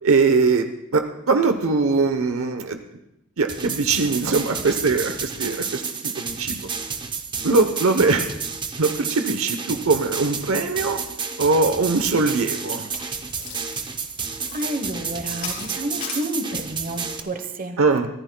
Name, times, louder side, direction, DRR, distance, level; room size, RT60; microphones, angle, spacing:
voice 1, 0.0-0.7 0.9-2.8 3.4-6.6 7.4-8.3 8.8-11.0 11.4-12.9 17.8-18.1, right 4 dB, 70° right, 7 dB, 0.9 m, -21 dB
sound 1, 3.5-17.2, right 5 dB, 20° right, 0.8 m, -31 dB
sound 2, 12.0-16.3, left 6 dB, 60° left, 3.3 m, -38 dB
voice 2, 14.5-17.8, right 1 dB, 40° right, 7 dB, 1.1 m, -30 dB
23.5 x 15.0 x 2.3 m, 0.87 s
head